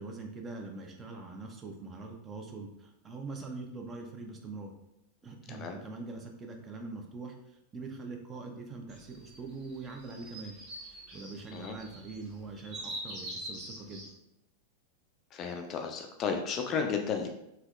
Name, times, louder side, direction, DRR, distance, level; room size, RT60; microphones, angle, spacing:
voice 1, 0.0-4.7 5.2-10.6 11.1-14.1, right 3 dB, 20° right, 2 dB, 0.5 m, -43 dB
sound 1, 8.9-14.1, right 1 dB, 40° right, 1.0 m, -44 dB
voice 2, 15.3-17.3, left 6 dB, 30° left, 4 dB, 0.3 m, -33 dB
3.4 x 2.7 x 2.2 m, 0.84 s
figure-of-eight pair, 90°, 0 cm